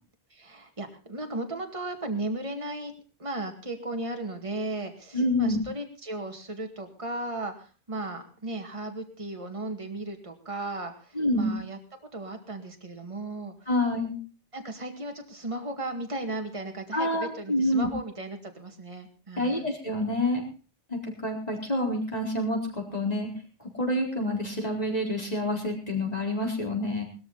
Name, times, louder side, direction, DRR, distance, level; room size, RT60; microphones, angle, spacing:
voice 1, 0.3-2.9 3.2-13.7 14.5-19.7, right 2 dB, 25° right, 4 dB, 2.1 m, -36 dB
voice 2, 5.1-5.6 11.2-11.5 13.7-14.2 16.9-17.9 19.4-20.4 20.9-23.3 23.6-27.0, left 1 dB, 30° left, 0 dB, 4.4 m, -27 dB
19.5 x 13.5 x 4.0 m, 0.36 s
omnidirectional pair, 1.3 m